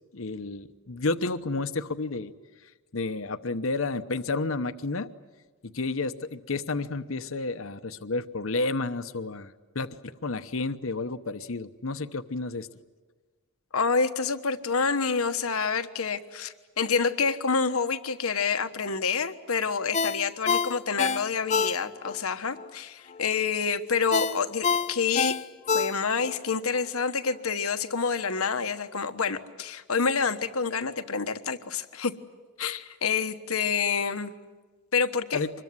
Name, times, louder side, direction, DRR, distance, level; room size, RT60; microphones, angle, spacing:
voice 1, 0.1-2.3 2.9-5.1 5.6-12.7 35.3-35.5, left 3 dB, 65° left, 10 dB, 0.9 m, -31 dB
voice 2, 13.7-25.4 25.7-32.1 32.6-34.3 34.9-35.4, left 5 dB, 90° left, 10 dB, 1.3 m, -28 dB
Ringtone, 19.9-22.2 22.6-22.7 24.1-26.4 26.7-26.9, left 5 dB, 35° left, 0.7 m, -27 dB
25.5 x 21.5 x 9.6 m, 1.4 s
head